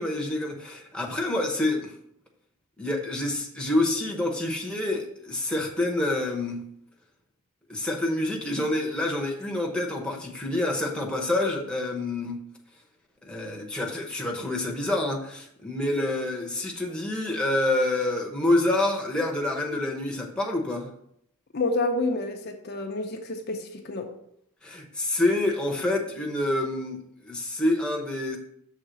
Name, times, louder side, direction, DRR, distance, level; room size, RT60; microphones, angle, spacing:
voice 1, 0.0-1.9 2.8-6.7 7.7-12.5 13.2-20.9 24.6-28.4, left 1 dB, 5° left, 1.0 m, -27 dB
voice 2, 21.5-24.1, left 2 dB, 50° left, 0.7 m, -29 dB
6.6 x 3.6 x 6.1 m
head